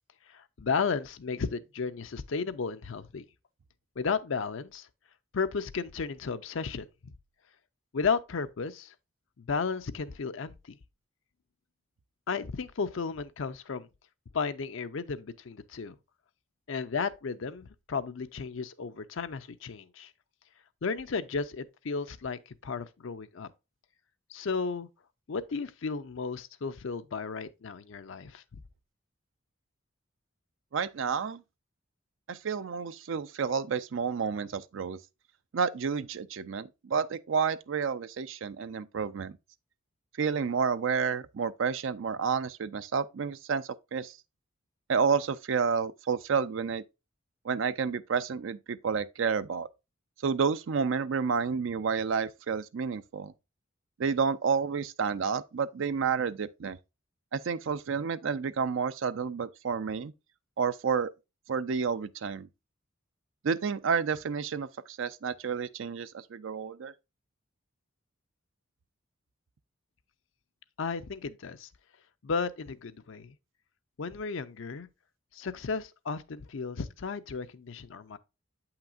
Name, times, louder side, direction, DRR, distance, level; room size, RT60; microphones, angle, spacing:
voice 1, 0.3-3.2 4.0-4.9 5.3-7.1 7.9-8.9 9.4-10.8 12.3-13.9 14.3-15.9 16.7-20.1 20.8-23.5 24.3-24.9 25.3-28.6 70.8-71.7 72.2-73.3 74.0-74.9 75.3-78.2, left 5 dB, 70° left, 0.5 m, -34 dB
voice 2, 30.7-31.4 32.3-35.0 35.5-39.4 40.2-44.1 44.9-46.8 47.4-49.7 50.2-53.3 54.0-56.8 57.3-60.1 60.6-61.1 61.5-62.5 63.4-66.9, right 6 dB, 70° right, 0.4 m, -30 dB
7.7 x 5.8 x 2.4 m
head